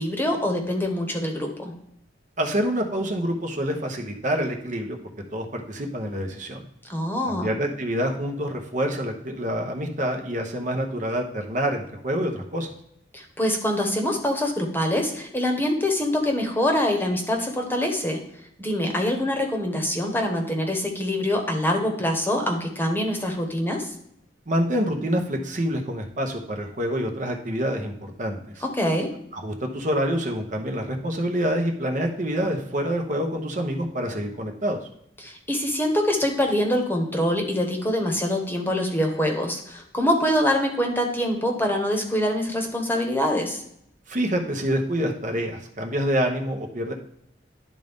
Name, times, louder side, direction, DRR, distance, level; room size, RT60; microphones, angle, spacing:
voice 1, 0.0-1.7 6.8-7.5 13.1-18.2 18.6-23.9 28.6-29.1 35.2-43.6, left 1 dB, 10° left, 2 dB, 1.1 m, -24 dB
voice 2, 2.4-5.0 5.3-6.6 7.3-12.7 24.5-28.6 29.3-34.8 44.1-46.9, equal, 45° right, 3 dB, 1.0 m, -27 dB
11.0 x 3.9 x 3.6 m, 0.72 s
head